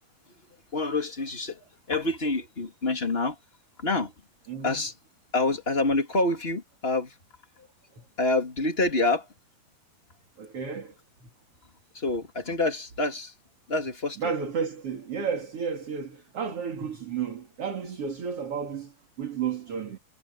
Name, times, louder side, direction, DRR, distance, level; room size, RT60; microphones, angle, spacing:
voice 1, 0.7-3.4 3.8-4.1 4.6-4.9 5.3-7.2 7.6-7.7 8.2-9.3 11.9-13.3 13.7-14.3, left 2 dB, 20° left, 2.0 m, -27 dB
voice 2, 4.5-4.8 8.0-8.1 10.4-10.9 11.2-11.3 14.2-20.0, right 6 dB, 40° right, 3.2 m, -32 dB
omnidirectional pair, 4.5 m